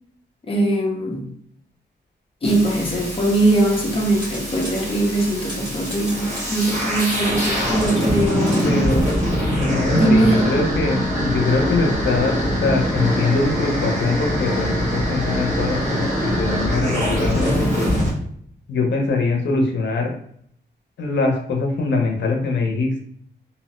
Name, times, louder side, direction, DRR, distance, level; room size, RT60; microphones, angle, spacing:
voice 1, 0.5-1.3 2.4-8.9 9.9-10.5, right 1 dB, 30° left, 0.6 m, -21 dB
sound 1, 2.4-18.1, equal, 40° right, 1.3 m, -23 dB
sound 2, 4.0-4.8 5.2-8.7, left 1 dB, 25° right, 1.0 m, -36 dB
voice 2, 8.6-9.1 9.5-17.7 18.7-20.1 21.0-23.0, left 3 dB, 80° left, 0.6 m, -22 dB
2.6 x 2.0 x 2.9 m
wide cardioid pair, 125°, 18 cm